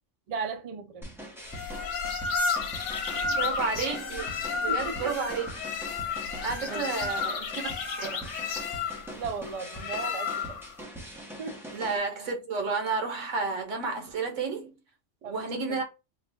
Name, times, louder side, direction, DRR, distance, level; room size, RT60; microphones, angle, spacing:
voice 1, 0.3-1.1 4.5-5.1 6.6-6.9 9.2-10.6 11.4-11.6 15.2-15.8, right 5 dB, 50° right, 0.4 m, -37 dB
sound 1, 1.0-12.0, right 1 dB, ahead, 0.7 m, -43 dB
sound 2, 1.5-10.7, left 5 dB, 75° left, 1.0 m, -32 dB
voice 2, 3.3-5.6 6.4-8.2 11.7-14.7 15.2-15.8, right 4 dB, 85° right, 1.3 m, -31 dB
3.4 x 2.2 x 4.1 m
omnidirectional pair, 1.3 m